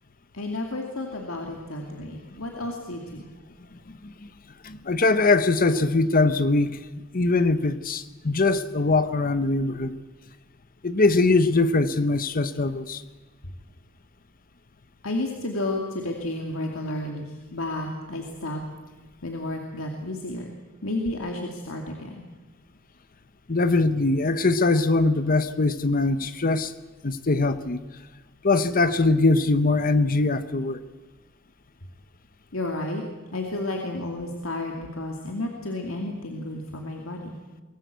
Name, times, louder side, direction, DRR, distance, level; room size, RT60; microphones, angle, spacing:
voice 1, 0.3-3.3 15.0-18.6 19.2-20.6 20.8-22.3 32.5-33.0 33.3-37.3, left 1 dB, 80° left, 1 dB, 2.5 m, -32 dB
voice 2, 4.6-6.8 7.1-10.0 10.8-13.0 23.5-26.7 27.0-27.8 28.4-30.8, left 3 dB, 45° left, 12 dB, 0.9 m, -22 dB
23.5 x 19.0 x 8.1 m, 1.3 s
head